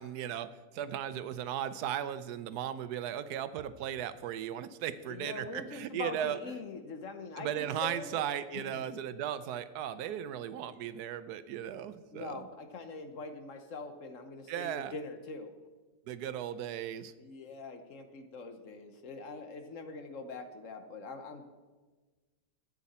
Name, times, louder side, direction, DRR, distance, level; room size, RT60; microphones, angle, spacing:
voice 1, 0.0-6.4 7.4-12.5 14.5-14.9 16.1-17.1, right 10 dB, 85° right, 14 dB, 1.2 m, -36 dB
voice 2, 5.1-8.3 8.5-8.8 12.1-15.5 17.2-21.4, left 3 dB, 60° left, 7 dB, 1.2 m, -43 dB
12.0 x 8.5 x 4.2 m, 1.3 s
omnidirectional pair, 1.6 m